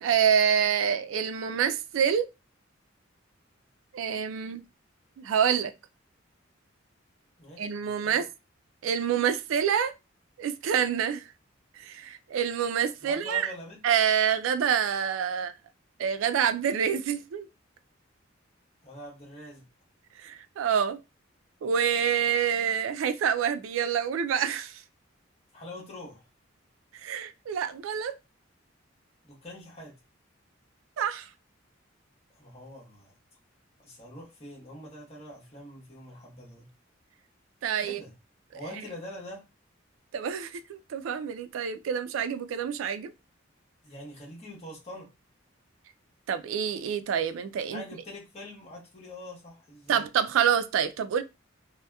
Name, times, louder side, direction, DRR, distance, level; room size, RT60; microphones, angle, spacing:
voice 1, 0.0-2.3 3.9-4.6 5.2-5.7 7.6-8.3 8.8-9.9 10.4-11.2 11.8-13.5 13.8-15.5 16.0-17.5 20.2-21.0 21.6-24.8 27.0-28.1 31.0-31.3 37.6-38.0 38.5-38.6 40.1-43.1 46.3-47.8 49.9-51.2, right 8 dB, 75° right, 0.3 m, -27 dB
voice 2, 13.0-13.8 18.8-19.6 25.5-26.2 29.2-29.9 32.3-33.1 33.8-36.7 37.8-38.1 38.5-39.4 43.8-45.1 47.7-50.1, left 1 dB, 30° left, 0.9 m, -44 dB
2.7 x 2.0 x 2.2 m
head